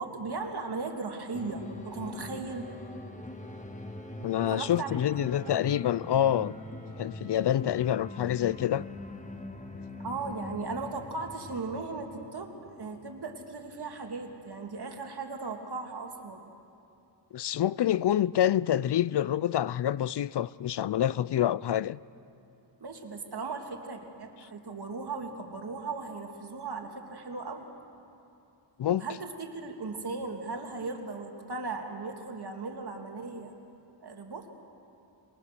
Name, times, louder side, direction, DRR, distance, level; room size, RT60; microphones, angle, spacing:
voice 1, 0.0-2.7 4.5-5.5 10.0-16.4 22.8-27.6 28.9-33.5 34.0-34.5, right 3 dB, 60° right, 2.4 m, -37 dB
sound 1, 1.3-15.0, left 1 dB, 15° left, 1.6 m, -43 dB
voice 2, 4.2-6.5 7.0-8.8 17.3-22.0 28.8-29.0, left 11 dB, 65° left, 0.5 m, -27 dB
25.5 x 22.5 x 6.7 m
wide cardioid pair, 110°, 44 cm